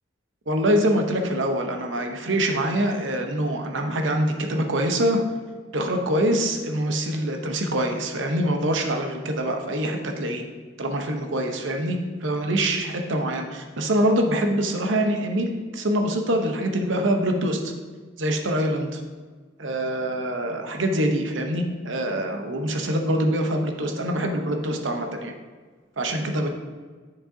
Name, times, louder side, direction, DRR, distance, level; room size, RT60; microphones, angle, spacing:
voice 1, 0.5-5.2 5.7-10.4 10.8-17.7 18.2-19.0 19.6-25.3 26.0-26.5, right 1 dB, 75° right, 4 dB, 0.9 m, -24 dB
7.8 x 6.3 x 2.7 m, 1.4 s
head